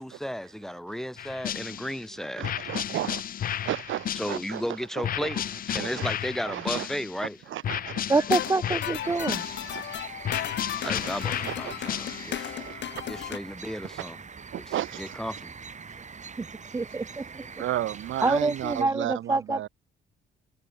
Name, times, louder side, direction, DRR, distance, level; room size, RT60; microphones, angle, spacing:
voice 1, 0.0-2.5 4.1-5.4 5.7-7.4 10.8-12.6 13.0-14.2 15.0-15.5, equal, ahead, 3.4 m, -34 dB
sound 1, 1.2-2.0 2.4-4.6 5.0-7.3 7.6-9.9 10.2-12.5, left 10 dB, 45° left, 0.5 m, -33 dB
voice 2, 2.4-3.3 3.6-4.6 4.9-5.5 5.8-6.1 6.4-6.9 7.5-8.1 9.1-9.2 9.7-9.9 10.7-12.2 12.5-13.0 13.9-14.0 14.5-15.2 17.6-19.7, right 13 dB, 80° right, 3.0 m, -34 dB
voice 3, 8.1-9.5 16.4-16.5 16.7-17.4 18.2-19.7, right 3 dB, 15° right, 0.4 m, -26 dB
sound 2, 8.2-13.4, left 10 dB, 65° left, 1.5 m, -35 dB
sound 3, 9.0-18.8, right 5 dB, 35° right, 7.6 m, -43 dB
cardioid pair, 90°, 20 cm